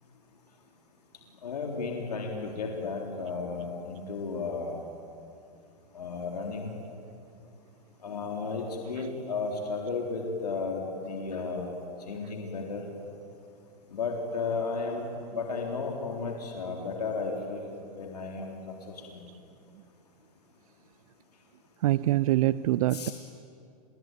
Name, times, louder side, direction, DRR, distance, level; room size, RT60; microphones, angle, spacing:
voice 1, 1.4-4.9 5.9-6.7 8.0-11.8 12.1-12.8 13.9-15.1 15.3-18.7 19.1-19.2 22.9-23.1, left 4 dB, 85° left, 1 dB, 3.6 m, -34 dB
voice 2, 21.8-23.1, right 15 dB, 65° right, 17 dB, 0.6 m, -25 dB
29.5 x 21.0 x 9.1 m, 2.6 s
hypercardioid pair, 110°, 20 cm